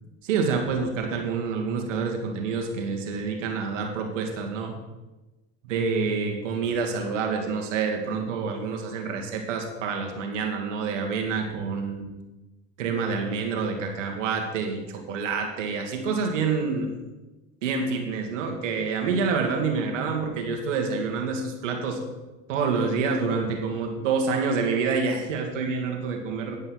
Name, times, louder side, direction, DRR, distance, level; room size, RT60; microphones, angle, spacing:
voice 1, 0.2-4.7 5.7-12.1 12.8-16.9 17.6-22.0 22.5-26.6, right 5 dB, 90° right, 3 dB, 1.9 m, -27 dB
10.0 x 5.6 x 7.7 m, 1.1 s
hypercardioid pair, 85°, 36 cm